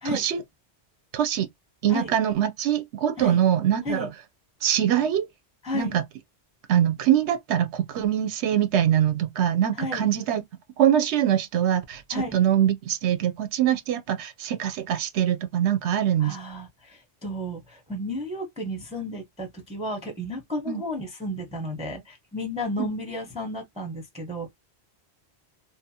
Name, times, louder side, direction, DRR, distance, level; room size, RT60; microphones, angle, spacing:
voice 1, 0.0-0.4 1.1-1.5 1.8-4.1 4.6-5.3 5.7-6.0 6.7-10.4 10.8-16.4 20.7-20.8 22.8-22.9, right 10 dB, 85° right, 0.9 m, -23 dB
voice 2, 5.6-6.0 9.8-10.1 12.1-12.4 13.6-13.7 14.1-14.2 16.2-24.5, left 1 dB, 5° right, 0.7 m, -33 dB
2.7 x 2.1 x 2.7 m
omnidirectional pair, 1.1 m